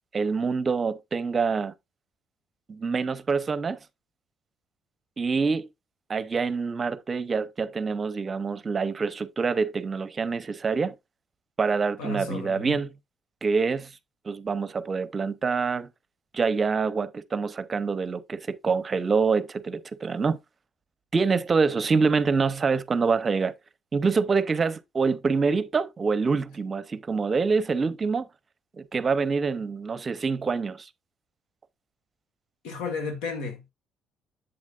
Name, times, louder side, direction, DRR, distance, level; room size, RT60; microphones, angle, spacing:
voice 1, 0.1-1.7 2.7-3.8 5.2-5.7 6.1-11.0 11.6-12.9 13.4-13.9 14.2-15.9 16.3-20.4 21.1-23.5 23.9-28.3 28.8-30.9, right 4 dB, 35° right, 0.7 m, -26 dB
voice 2, 12.0-12.8 32.6-33.7, left 4 dB, 90° left, 1.6 m, -33 dB
7.9 x 7.4 x 2.4 m
cardioid pair, 90°, 0 cm